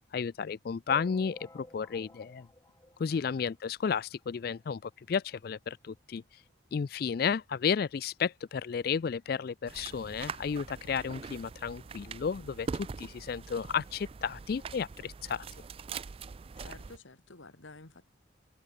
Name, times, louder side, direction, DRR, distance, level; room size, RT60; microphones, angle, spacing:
voice 1, 0.1-2.5 3.0-6.2 6.7-12.7 13.0-15.4, left 6 dB, 50° left, 0.3 m, -32 dB
sound 1, 0.9-3.7 4.2-4.3 4.5-4.6 4.9-5.0 5.9-6.0 6.5-6.6, left 1 dB, 15° left, 1.1 m, -53 dB
sound 2, 9.7-17.0, right 5 dB, 30° right, 0.3 m, -43 dB
voice 2, 16.6-18.0, left 3 dB, 85° left, 2.2 m, -51 dB
head